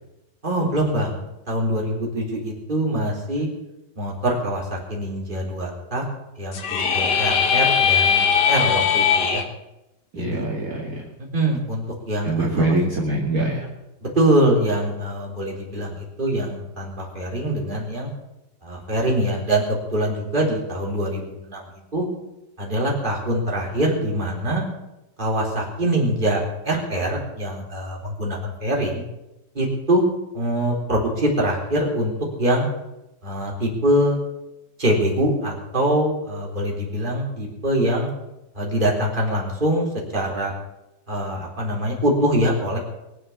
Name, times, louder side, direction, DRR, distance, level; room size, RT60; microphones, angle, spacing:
voice 1, 0.4-3.5 4.0-6.0 6.4-9.4 10.1-10.4 11.3-12.7 14.0-18.1 18.6-22.0 22.6-24.6 25.2-29.0 29.5-30.0 30.3-32.1 32.4-32.7 33.2-34.2 34.8-38.1 38.5-39.9 40.1-40.5 41.1-42.8, right 1 dB, 25° right, -3 dB, 4.0 m, -24 dB
sound 1, 6.5-9.4, left 7 dB, 65° left, 2.0 m, -19 dB
voice 2, 10.1-11.0 12.2-13.7, right 2 dB, 50° right, -3 dB, 2.6 m, -23 dB
22.5 x 7.6 x 7.3 m, 0.94 s
omnidirectional pair, 2.0 m